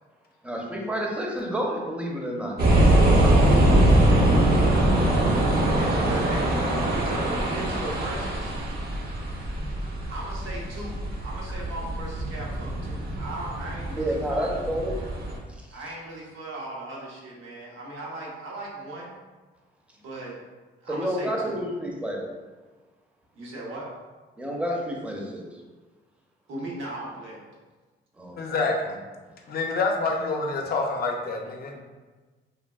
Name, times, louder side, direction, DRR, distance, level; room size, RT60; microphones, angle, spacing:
voice 1, 0.4-2.6 13.9-15.0 15.5-15.6 20.9-22.3 24.4-25.6 28.2-28.4, equal, 5° right, -1 dB, 0.5 m, -29 dB
sound 1, 2.6-15.4, right 1 dB, 50° right, 0.6 m, -23 dB
voice 2, 2.6-4.1 4.5-4.9 5.4-6.5 6.8-8.5 10.1-14.7 15.7-19.1 20.0-20.4 20.8-21.6 23.4-23.9 26.5-27.4 28.6-28.9 31.7-31.8, right 1 dB, 85° right, -3 dB, 0.8 m, -38 dB
voice 3, 28.4-29.0 29.5-31.7, left 3 dB, 50° left, 1 dB, 0.5 m, -27 dB
3.3 x 2.2 x 2.2 m, 1.3 s
cardioid pair, 90°, 20 cm